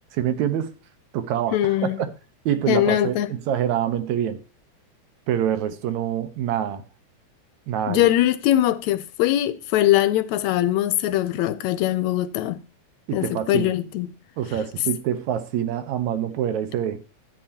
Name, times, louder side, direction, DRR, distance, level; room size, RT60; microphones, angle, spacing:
voice 1, 0.1-0.7 1.1-2.1 2.5-4.4 5.3-6.8 7.7-8.1 13.1-13.7 14.4-17.0, right 10 dB, 75° right, 2.3 m, -26 dB
voice 2, 1.5-2.0 2.7-3.3 7.9-12.6 13.1-14.1, left 13 dB, 80° left, 1.8 m, -21 dB
12.5 x 8.8 x 2.8 m
omnidirectional pair, 3.4 m